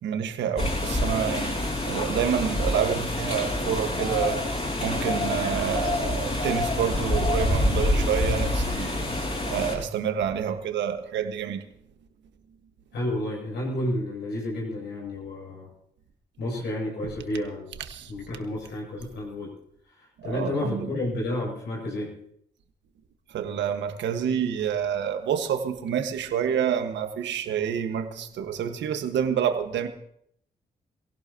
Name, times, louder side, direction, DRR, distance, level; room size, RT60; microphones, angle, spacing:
voice 1, 0.0-4.4 4.8-9.1 9.5-11.6 17.9-18.1 20.2-20.9 23.3-29.9, right 8 dB, 75° right, 7 dB, 1.7 m, -28 dB
sound 1, 0.6-9.8, left 1 dB, 35° left, 8.0 m, -27 dB
voice 2, 12.9-15.7 16.4-17.7 18.1-19.5 19.8-22.1, left 1 dB, 70° left, -3 dB, 7.9 m, -31 dB
26.5 x 17.0 x 3.0 m, 0.68 s
hypercardioid pair, 40°, 19 cm